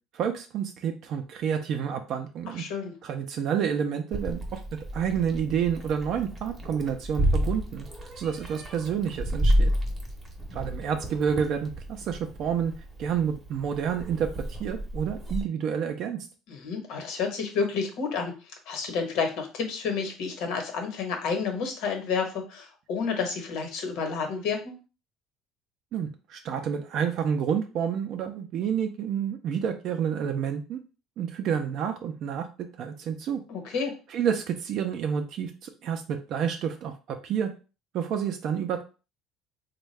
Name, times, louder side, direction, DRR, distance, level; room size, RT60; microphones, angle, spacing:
voice 1, 0.1-2.6 3.0-4.6 4.9-7.9 8.2-9.7 10.5-12.7 13.0-16.3 25.9-30.8 31.2-32.5 32.8-33.4 34.1-37.5 37.9-38.8, right 7 dB, 55° right, 6 dB, 0.4 m, -29 dB
voice 2, 2.6-2.9 16.5-18.3 18.7-24.7 33.5-33.9, left 5 dB, 70° left, 3 dB, 1.0 m, -30 dB
Meow, 4.1-15.4, equal, 15° right, 0.7 m, -30 dB
3.5 x 2.2 x 3.2 m, 0.34 s
cardioid pair, 145°, 0 cm